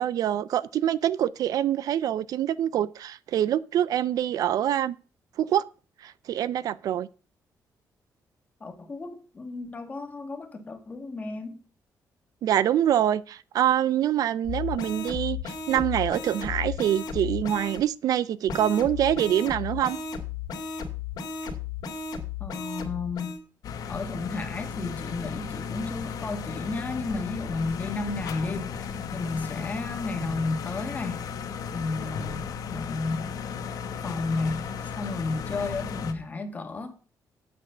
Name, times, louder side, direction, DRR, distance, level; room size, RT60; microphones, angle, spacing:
voice 1, 0.0-5.0 5.4-5.6 6.0-7.1 12.4-20.0, right 11 dB, 65° right, 0.4 m, -25 dB
voice 2, 8.6-11.6 22.4-23.4 23.9-31.2 31.7-32.4 32.7-33.3 34.0-34.6 35.0-36.9, left 3 dB, 25° left, 1.4 m, -32 dB
sound 1, 14.4-17.8 18.5-23.4, left 6 dB, 90° left, 2.2 m, -34 dB
sound 2, 23.6-36.1, left 6 dB, 65° left, 1.1 m, -35 dB
8.3 x 6.8 x 6.6 m
cardioid pair, 175°, 7 cm